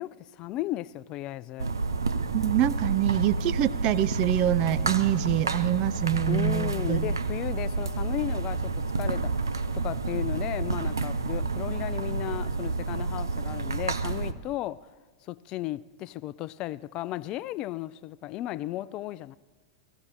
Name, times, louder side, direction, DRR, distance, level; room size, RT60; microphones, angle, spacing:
voice 1, 0.0-1.7 6.3-14.9 15.3-19.4, left 15 dB, 40° left, 0.3 m, -35 dB
sound 1, 1.6-14.3, right 3 dB, 85° right, 0.6 m, -29 dB
voice 2, 2.3-7.1, right 13 dB, 45° right, 0.5 m, -25 dB
16.5 x 16.0 x 4.2 m
figure-of-eight pair, 95°, 2 cm